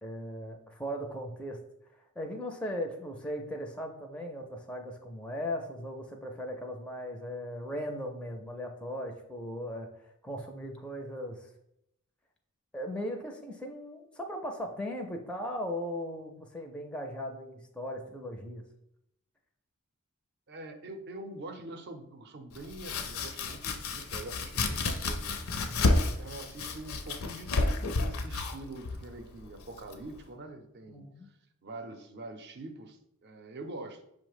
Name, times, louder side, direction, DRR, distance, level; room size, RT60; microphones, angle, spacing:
voice 1, 0.0-1.6 2.2-11.5 12.7-18.6 25.5-25.9 30.9-31.3, equal, 5° left, 3 dB, 0.4 m, -38 dB
voice 2, 20.5-25.4 26.2-31.0 31.6-34.0, right 2 dB, 50° right, 7 dB, 0.5 m, -44 dB
Domestic sounds home sounds, 22.5-30.3, left 3 dB, 70° left, 0.5 m, -31 dB
5.5 x 2.1 x 4.7 m, 0.78 s
head